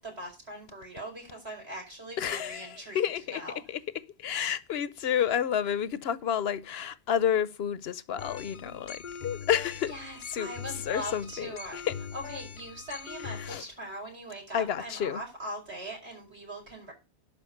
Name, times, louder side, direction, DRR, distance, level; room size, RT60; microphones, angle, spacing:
voice 1, 0.0-3.6 8.4-8.5 9.9-11.8 12.1-16.9, right 1 dB, 75° right, 5.7 m, -41 dB
voice 2, 2.2-3.4 3.7-3.8 4.2-9.9 10.3-10.5 10.9-12.0 13.4-13.7 14.5-15.2, left 9 dB, 70° left, 1.0 m, -30 dB
sound 1, 8.2-13.6, left 6 dB, 50° left, 0.8 m, -42 dB
11.5 x 5.2 x 6.5 m
omnidirectional pair, 1.1 m